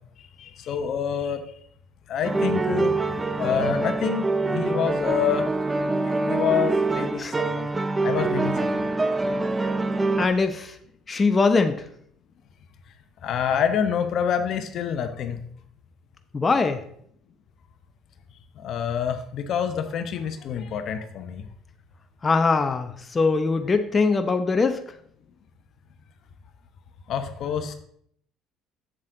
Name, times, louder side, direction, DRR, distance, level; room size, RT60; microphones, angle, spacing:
voice 1, 0.4-1.4 2.1-5.5 5.8-7.7 8.0-8.9 13.2-15.4 18.6-21.5 27.1-27.7, left 8 dB, 55° left, 8 dB, 0.9 m, -27 dB
sound 1, 2.2-10.3, right 3 dB, 20° right, 0.6 m, -25 dB
voice 2, 10.2-10.8 11.1-11.8 16.3-16.8 22.2-24.8, left 4 dB, 30° left, 7 dB, 0.8 m, -22 dB
7.7 x 7.4 x 3.9 m, 0.66 s
hypercardioid pair, 60°, 0 cm